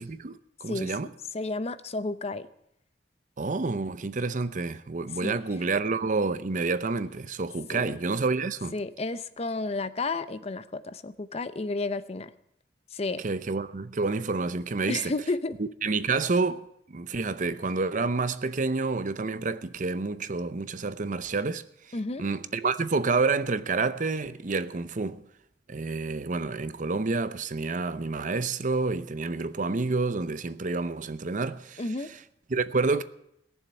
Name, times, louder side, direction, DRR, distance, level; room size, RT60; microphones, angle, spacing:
voice 1, 0.0-1.1 3.4-8.7 13.2-15.1 15.6-21.6 22.2-25.2 25.7-31.8 32.5-33.0, right 3 dB, 45° right, 0.7 m, -29 dB
voice 2, 0.7-2.5 5.2-5.4 7.7-8.0 8.7-12.3 12.9-13.2 14.9-15.6 21.9-22.3 31.8-32.1, left 3 dB, 35° left, 0.6 m, -32 dB
18.0 x 7.2 x 9.4 m
head